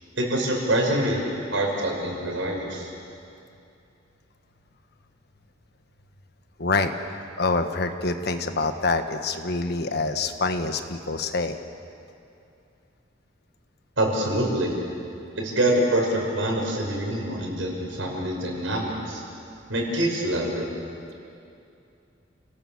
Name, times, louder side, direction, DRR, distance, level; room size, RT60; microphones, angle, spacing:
voice 1, 0.2-1.2 1.5-2.9 14.0-14.7 15.4-19.2 19.7-20.7, right 1 dB, 85° right, 0 dB, 5.8 m, -25 dB
voice 2, 6.6-11.5, left 3 dB, 60° left, 7 dB, 1.4 m, -26 dB
29.0 x 18.0 x 7.3 m, 2.6 s
head